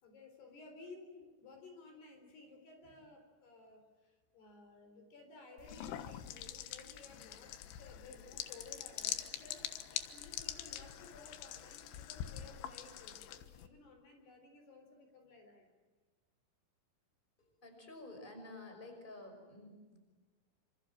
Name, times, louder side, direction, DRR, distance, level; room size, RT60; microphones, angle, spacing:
voice 1, 0.0-9.6 10.1-15.7, left 3 dB, 60° left, 5 dB, 5.9 m, -56 dB
sound 1, 5.6-13.7, left 11 dB, 80° left, 3.7 m, -44 dB
voice 2, 17.4-20.0, left 2 dB, 10° left, 5 dB, 5.5 m, -51 dB
29.0 x 26.5 x 7.5 m, 1.3 s
omnidirectional pair, 5.3 m